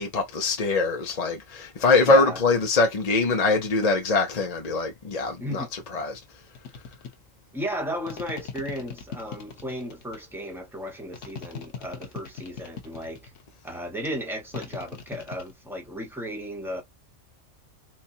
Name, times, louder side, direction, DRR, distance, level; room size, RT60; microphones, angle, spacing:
voice 1, 0.0-6.1, left 3 dB, 40° left, 0.7 m, -23 dB
voice 2, 2.0-2.4 5.4-5.7 7.5-13.3 13.6-16.8, equal, ahead, 1.0 m, -34 dB
sound 1, 6.5-7.1 8.1-10.2 11.1-13.4 14.5-15.5, left 6 dB, 75° left, 1.3 m, -39 dB
4.4 x 2.3 x 2.7 m
omnidirectional pair, 1.3 m